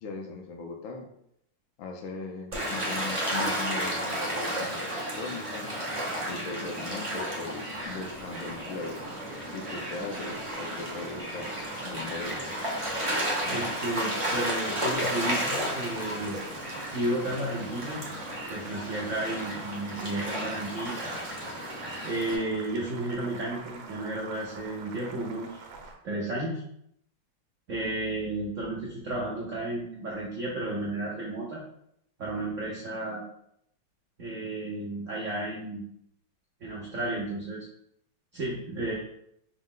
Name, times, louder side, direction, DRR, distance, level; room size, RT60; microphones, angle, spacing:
voice 1, 0.0-1.1 1.8-5.7 6.3-9.0 9.5-12.6, left 3 dB, 75° left, 2 dB, 1.4 m, -39 dB
Gull seagull / Waves surf, 2.5-22.4, equal, 45° right, 0.4 m, -33 dB
Boiling, 7.7-25.9, right 4 dB, 70° right, 1.1 m, -46 dB
voice 2, 13.5-16.4 16.9-18.0 18.5-21.0 22.0-25.6 26.0-26.6 27.7-31.6 32.2-33.2 34.2-35.9 36.6-37.6 38.3-38.9, right 1 dB, 85° right, -4 dB, 0.6 m, -33 dB
5.2 x 2.1 x 3.7 m, 0.73 s
omnidirectional pair, 2.3 m